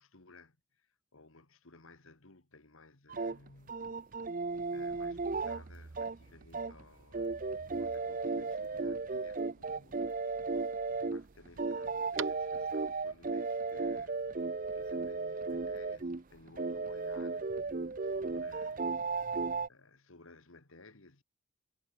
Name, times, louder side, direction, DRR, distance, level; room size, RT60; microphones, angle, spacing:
voice 1, 0.0-3.8 4.3-4.4 4.7-10.2 10.9-19.1 19.7-21.2, left 3 dB, 75° left, 2.2 m, -58 dB
sound 1, 3.1-6.8 7.1-16.2 16.5-19.7, right 4 dB, 40° right, 0.6 m, -35 dB
sound 2, 4.5-13.0, right 7 dB, 65° right, 1.2 m, -52 dB
head